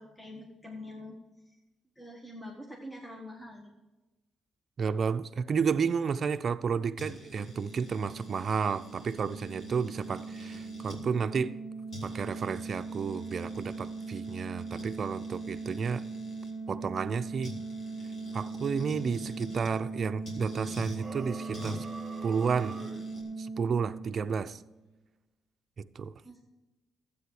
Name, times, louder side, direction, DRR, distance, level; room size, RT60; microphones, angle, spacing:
voice 1, 0.0-1.6 1.9-3.7 26.2-26.4, left 1 dB, 10° left, 0 dB, 1.5 m, -45 dB
voice 2, 4.8-11.6 12.0-16.0 16.7-17.5 18.3-21.9 22.2-22.8 23.4-24.6 25.8-26.1, right 6 dB, 45° right, 10 dB, 0.5 m, -31 dB
sound 1, 7.0-11.0 11.6-11.7 11.9-16.5 17.4-19.8 20.2-21.0 21.5-23.2, left 2 dB, 50° left, 3.1 m, -48 dB
sound 2, 7.2-24.7, right 4 dB, 90° left, 1.4 m, -40 dB
sound 3, 20.9-23.1, right 3 dB, 25° right, 1.6 m, -44 dB
12.5 x 8.4 x 4.9 m, 1.1 s
cardioid pair, 90°, 0 cm